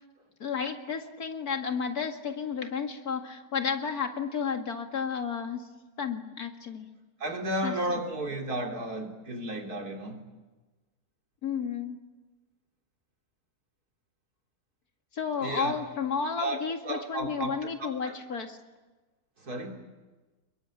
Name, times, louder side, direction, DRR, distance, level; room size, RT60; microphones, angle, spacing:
voice 1, 0.4-5.7 6.0-6.9 7.6-7.7 11.4-12.0 15.1-18.6, left 6 dB, 80° left, 2.6 m, -32 dB
voice 2, 7.2-10.2 15.4-15.7 16.4-16.6 16.8-17.5 17.8-18.2 19.4-19.8, right 1 dB, 80° right, 4.0 m, -33 dB
28.5 x 22.0 x 8.8 m
omnidirectional pair, 1.6 m